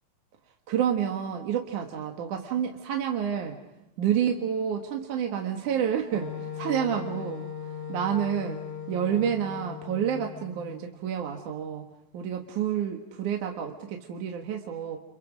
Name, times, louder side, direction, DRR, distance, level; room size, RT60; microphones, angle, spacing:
voice 1, 0.7-3.6 4.0-6.3 6.6-7.4 7.9-8.6 8.9-11.8 12.1-15.0, right 9 dB, 65° right, 2 dB, 2.9 m, -29 dB
Wind instrument woodwind instrument, 6.1-10.8, left 8 dB, 40° left, 4.9 m, -38 dB
29.5 x 29.0 x 5.1 m, 0.95 s
omnidirectional pair, 4.0 m